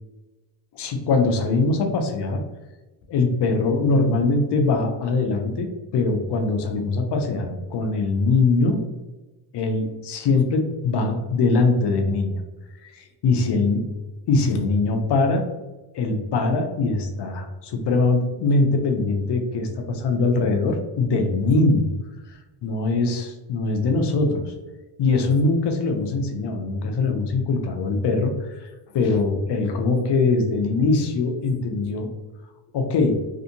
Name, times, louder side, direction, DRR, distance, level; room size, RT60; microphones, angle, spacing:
voice 1, 0.7-2.4 3.1-8.8 9.5-12.4 12.8-13.9 14.3-15.5 15.9-21.9 22.6-24.5 25.0-32.1 32.7-33.2, left 3 dB, 60° left, 5 dB, 0.6 m, -22 dB
2.5 x 2.4 x 2.7 m, 1.1 s
cardioid pair, 80°, 46 cm